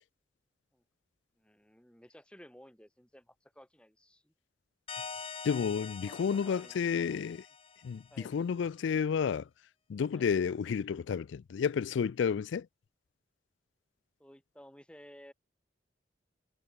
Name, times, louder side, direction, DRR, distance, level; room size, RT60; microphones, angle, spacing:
voice 1, 1.4-4.3 6.0-6.9 8.1-8.3 10.1-10.3 14.2-15.3, equal, 5° left, 3.8 m, -55 dB
sound 1, 4.9-8.3, left 5 dB, 30° left, 1.2 m, -45 dB
voice 2, 5.4-7.5 7.8-9.5 9.9-12.7, left 6 dB, 80° left, 0.4 m, -31 dB
head